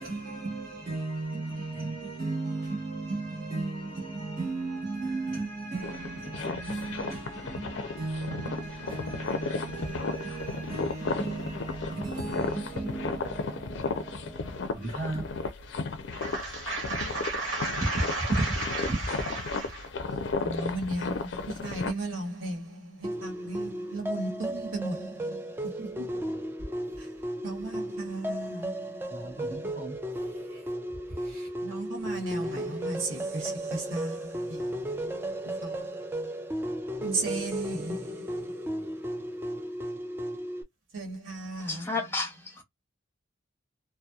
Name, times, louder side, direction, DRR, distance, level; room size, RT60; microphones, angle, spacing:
voice 1, 0.0-15.2 18.8-18.9 29.1-30.0 30.5-30.6 31.2-31.5, right 2 dB, 40° right, 1.0 m, -36 dB
sound 1, 5.8-21.9, left 3 dB, 65° left, 0.4 m, -34 dB
voice 2, 16.1-19.9 20.4-26.4 27.0-27.1 27.4-29.4 31.6-35.0 35.6-36.0 37.0-38.8 40.9-41.9, right 2 dB, 85° right, 1.1 m, -35 dB
sound 2, 23.0-40.6, right 1 dB, 10° right, 0.3 m, -35 dB
voice 3, 41.6-42.6, left 3 dB, 10° left, 0.7 m, -32 dB
2.7 x 2.1 x 2.3 m
head